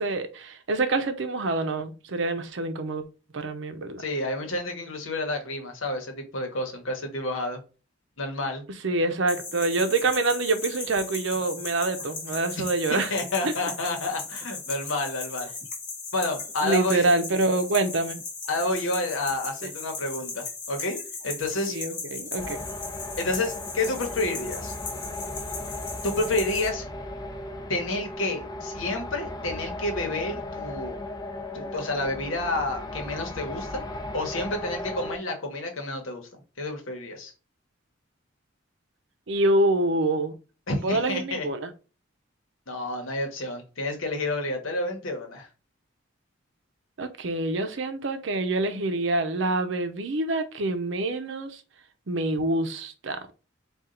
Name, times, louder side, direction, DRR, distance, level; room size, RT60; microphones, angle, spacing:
voice 1, 0.0-3.0 3.3-4.0 8.8-13.1 13.4-13.5 16.6-18.2 19.6-19.7 21.7-22.6 39.3-40.3 40.8-41.7 47.0-51.6 52.1-53.2, right 2 dB, 65° right, 0.6 m, -26 dB
voice 2, 4.0-7.6 8.2-8.6 12.9-15.5 16.1-17.1 18.5-21.0 21.2-21.8 23.2-24.7 26.0-26.9 27.7-31.0 31.5-33.8 34.1-36.3 36.6-37.3 40.7-41.5 42.7-45.5, left 2 dB, 80° left, 1.1 m, -29 dB
sound 1, 9.3-26.7, left 4 dB, 40° left, 1.1 m, -37 dB
sound 2, 22.4-35.2, left 1 dB, 20° left, 0.5 m, -36 dB
4.3 x 2.4 x 3.8 m
head